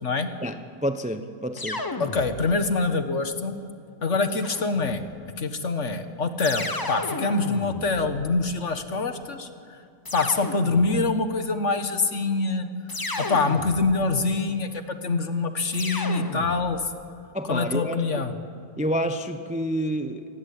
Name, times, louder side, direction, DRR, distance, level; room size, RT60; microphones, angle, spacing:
voice 1, 0.4-1.8 17.3-18.3 18.8-20.3, equal, 5° right, 8 dB, 0.7 m, -29 dB
sound 1, 1.6-2.8 4.3-5.1 6.4-8.7 10.0-11.2 12.9-14.2 15.7-16.9, left 2 dB, 15° left, 1.0 m, -34 dB
voice 2, 2.0-3.5 4.0-5.0 5.4-9.5 10.1-12.7 13.3-16.8 17.5-18.3, left 3 dB, 45° left, 8 dB, 1.7 m, -25 dB
27.5 x 19.5 x 8.6 m, 2.3 s
omnidirectional pair, 1.9 m